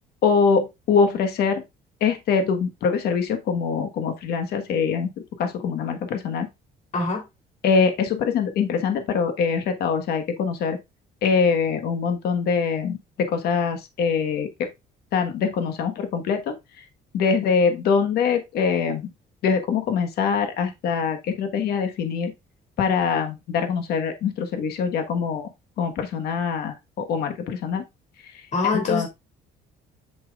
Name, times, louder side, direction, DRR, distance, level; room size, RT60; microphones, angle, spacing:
voice 1, 0.2-1.6 2.0-5.1 5.4-6.5 7.6-10.8 11.2-14.7 15.1-16.8 17.1-19.1 19.4-22.3 22.8-25.5 25.8-27.8 28.3-28.5 28.9-29.1, left 5 dB, 70° left, 1.4 m, -23 dB
voice 2, 6.9-7.3 28.5-29.1, left 4 dB, 45° left, 3.2 m, -24 dB
8.2 x 6.0 x 2.4 m
cardioid pair, 110°, 17 cm